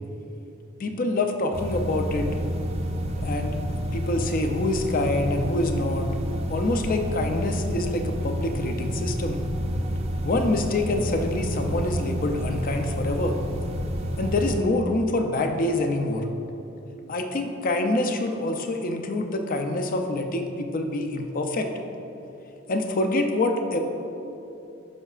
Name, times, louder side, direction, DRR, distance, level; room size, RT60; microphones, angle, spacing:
voice 1, 0.8-2.3 3.2-3.6 3.9-6.1 6.5-9.4 10.2-13.4 14.2-16.3 17.1-21.7 22.7-23.8, left 2 dB, 40° left, 5 dB, 0.5 m, -26 dB
sound 1, 1.5-14.6, equal, 30° right, 0.5 m, -29 dB
11.5 x 5.4 x 2.4 m, 2.8 s
head